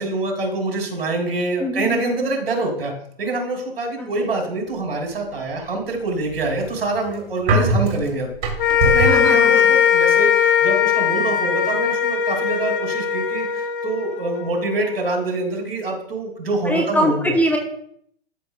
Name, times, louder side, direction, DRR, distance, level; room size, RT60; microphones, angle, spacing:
voice 1, 0.0-2.9 3.2-8.3 8.8-17.3, right 2 dB, 80° right, 2 dB, 3.1 m, -25 dB
voice 2, 1.6-2.3 4.0-4.1 9.1-9.8 16.6-17.6, equal, 5° left, 3 dB, 0.7 m, -23 dB
sound 1, 6.1-9.3, right 2 dB, 55° right, 2.0 m, -22 dB
sound 2, 8.6-15.0, left 8 dB, 60° left, 1.0 m, -19 dB
12.5 x 6.5 x 2.5 m, 0.65 s
hypercardioid pair, 135°, 30 cm